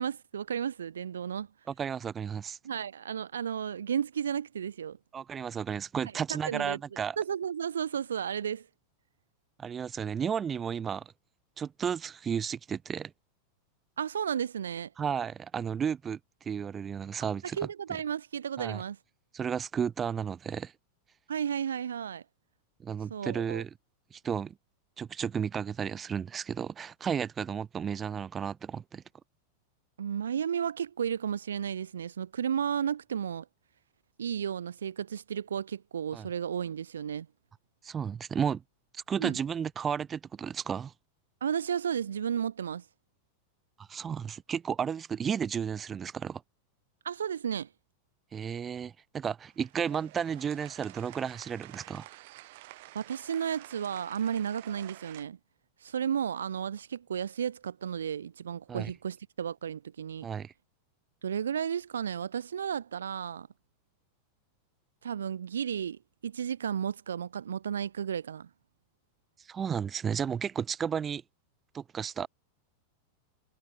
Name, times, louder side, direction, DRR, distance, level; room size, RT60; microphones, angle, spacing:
voice 1, 0.0-1.5 2.6-5.0 6.3-6.8 7.2-8.7 14.0-14.9 17.6-19.0 21.3-22.2 23.1-23.6 30.0-33.4 34.2-37.3 39.2-39.4 41.4-42.8 47.0-47.7 52.9-55.4 55.8-60.3 61.2-63.5 65.0-68.5, right 8 dB, 65° right, 1.7 m, -33 dB
voice 2, 1.7-2.6 5.1-7.2 9.6-11.1 11.6-13.1 15.0-16.2 16.4-17.6 18.6-18.8 19.3-20.7 22.8-23.7 24.1-24.6 25.0-29.0 36.1-36.3 37.8-38.6 38.9-40.9 43.8-46.4 48.3-52.1 58.7-58.9 60.2-60.5 69.4-71.2 71.7-72.3, right 7 dB, 20° right, 3.2 m, -33 dB
sound 1, 49.5-55.2, right 20 dB, 50° right, 7.6 m, -50 dB
figure-of-eight pair, 90°, 0 cm